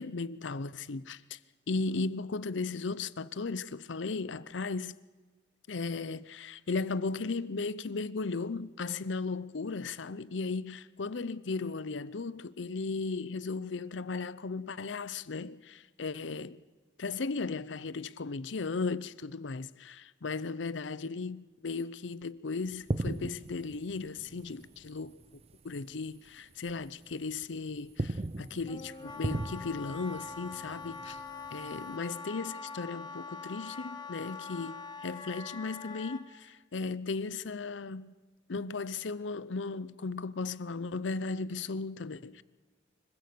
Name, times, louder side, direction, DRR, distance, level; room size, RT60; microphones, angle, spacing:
voice 1, 0.0-1.4 1.7-4.9 5.7-16.6 17.0-25.2 25.6-31.2 31.5-38.1 38.5-42.4, left 4 dB, 80° left, 0.7 m, -36 dB
sound 1, 22.7-25.6 25.9-26.1 26.7-27.4 27.8-31.9, right 2 dB, 35° right, 0.6 m, -38 dB
Wind instrument woodwind instrument, 28.7-36.2, left 4 dB, 25° left, 1.4 m, -43 dB
24.5 x 16.0 x 6.9 m
head